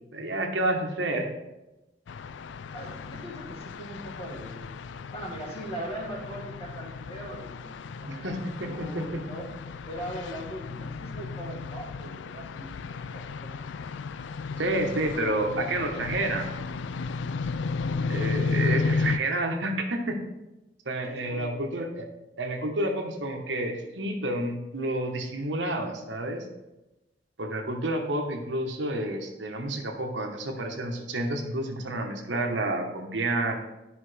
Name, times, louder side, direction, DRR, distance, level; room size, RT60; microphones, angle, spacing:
voice 1, 0.1-1.3 8.1-9.2 14.6-16.5 18.1-20.2 20.8-22.0 22.4-26.4 27.4-33.5, right 1 dB, 90° right, 3 dB, 1.2 m, -29 dB
sound 1, 2.1-19.2, left 4 dB, 80° left, 0.4 m, -34 dB
voice 2, 2.7-4.7 5.1-8.4 8.7-9.5 9.9-13.6 21.0-21.5, right 1 dB, 35° left, -3 dB, 2.1 m, -40 dB
11.5 x 5.2 x 3.3 m, 1.0 s
head